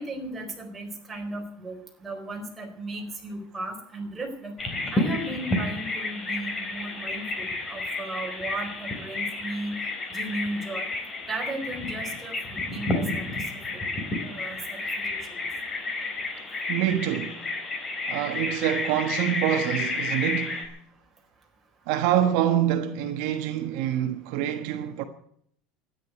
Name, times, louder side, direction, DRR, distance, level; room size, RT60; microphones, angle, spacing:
voice 1, 0.0-4.6 4.9-9.8 10.1-10.9 11.3-12.4 12.7-13.4 14.2-15.3, right 2 dB, 10° right, 4.3 m, -35 dB
Bird vocalization bird call bird song, 4.6-20.7, left 2 dB, 20° left, 3.3 m, -31 dB
voice 2, 16.7-17.5 18.1-20.7 21.9-25.0, right 11 dB, 60° right, 1.3 m, -26 dB
13.0 x 10.5 x 9.1 m
cardioid pair, 155°, 0 cm